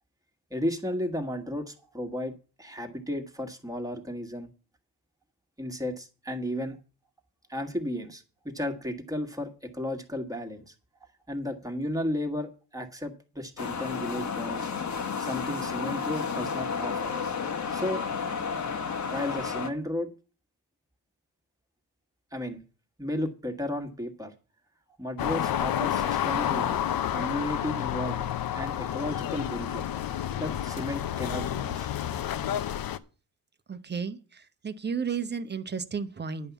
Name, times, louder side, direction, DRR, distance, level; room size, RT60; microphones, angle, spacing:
voice 1, 0.5-4.5 5.6-6.8 7.5-10.7 11.3-14.7 15.0-17.1 17.7-18.0 19.1-20.1 22.3-22.6 23.0-24.3 25.0-26.8 27.1-29.8 30.4-31.9, left 1 dB, 10° right, 5 dB, 1.6 m, -34 dB
sound 1, 13.6-19.7, left 6 dB, 45° left, 1.2 m, -32 dB
sound 2, 25.2-33.0, left 10 dB, 65° left, 0.8 m, -30 dB
voice 2, 33.7-36.5, right 6 dB, 25° right, 10 dB, 0.9 m, -33 dB
10.5 x 5.5 x 8.2 m, 0.35 s
cardioid pair, 125°, 39 cm